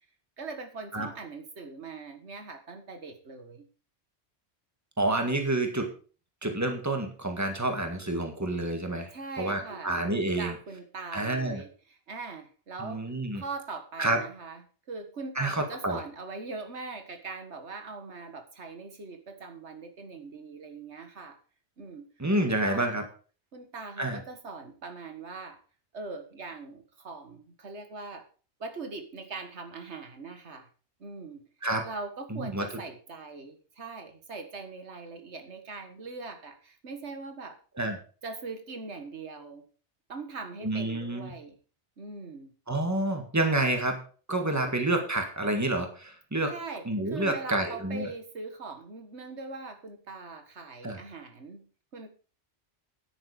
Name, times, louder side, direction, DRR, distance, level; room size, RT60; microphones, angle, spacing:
voice 1, 0.4-3.7 9.1-10.0 10.4-13.0 13.3-21.4 21.8-22.1 22.4-23.0 23.5-25.6 25.9-28.3 28.6-30.7 31.0-31.4 31.8-37.6 38.2-39.6 40.1-41.6 42.0-42.5 44.7-44.8 46.5-52.1, right 3 dB, 90° right, 6 dB, 1.9 m, -41 dB
voice 2, 5.0-5.9 6.4-9.1 9.4-10.5 11.1-11.6 12.8-13.4 14.0-14.2 15.4-16.0 22.2-23.0 24.0-24.2 31.6-31.8 32.3-32.6 37.8-38.0 40.6-41.3 42.7-44.0 44.3-46.5 46.9-48.1 50.8-51.0, right 2 dB, 15° right, 4 dB, 1.9 m, -28 dB
10.0 x 8.9 x 5.1 m, 0.38 s
omnidirectional pair, 1.1 m